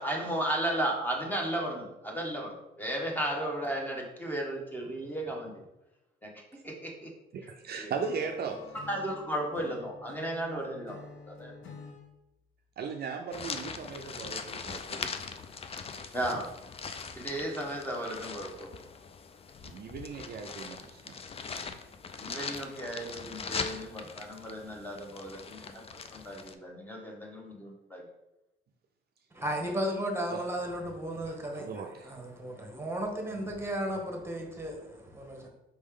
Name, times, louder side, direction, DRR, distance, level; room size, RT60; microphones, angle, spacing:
voice 1, 0.0-5.5 6.2-6.3 6.6-7.1 7.8-7.9 8.9-11.0 11.3-11.5 16.1-16.5 17.2-18.7 22.2-25.8 26.1-28.1, right 1 dB, 10° left, 1.0 m, -34 dB
voice 2, 7.3-8.7 12.8-15.2 19.6-21.2 30.3-30.4 31.5-32.1, right 5 dB, 55° right, 0.4 m, -37 dB
Acoustic guitar / Strum, 8.0-12.1, left 4 dB, 80° left, 0.8 m, -49 dB
sound 1, 13.3-26.5, left 5 dB, 30° left, 0.4 m, -41 dB
voice 3, 29.3-35.5, equal, 10° right, 1.1 m, -35 dB
4.6 x 3.1 x 3.7 m
cardioid pair, 90°, 20 cm